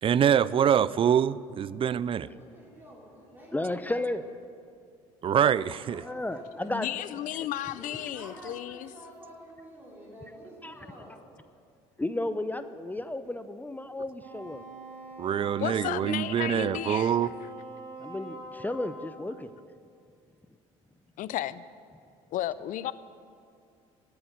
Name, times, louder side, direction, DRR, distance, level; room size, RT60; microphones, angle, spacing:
voice 1, 0.0-2.3 5.2-6.0 15.2-17.3, right 9 dB, 35° right, 19 dB, 0.4 m, -25 dB
voice 2, 2.1-4.1 5.5-6.8 7.6-11.2, right 1 dB, 10° right, -6 dB, 4.1 m, -49 dB
voice 3, 3.5-4.2 6.0-6.9 10.6-10.8 12.0-14.6 18.0-19.5, left 1 dB, 10° left, 11 dB, 0.6 m, -33 dB
voice 4, 6.7-8.9 15.6-17.2 21.2-21.6 22.3-22.9, left 13 dB, 60° left, 16 dB, 0.5 m, -33 dB
Wind instrument woodwind instrument, 14.2-19.2, right 2 dB, 60° right, 3.5 m, -44 dB
12.0 x 7.8 x 9.2 m, 2.3 s
hypercardioid pair, 65°, 15 cm